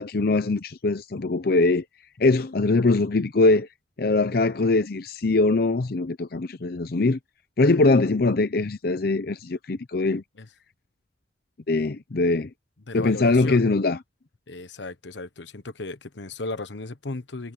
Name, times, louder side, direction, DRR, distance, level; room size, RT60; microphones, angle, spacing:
voice 1, 0.0-1.8 2.2-3.7 4.0-7.2 7.6-10.2 11.7-12.5 12.9-14.0, left 3 dB, 55° left, 0.7 m, -22 dB
voice 2, 12.9-13.6 14.5-17.5, left 2 dB, 80° left, 1.2 m, -35 dB
head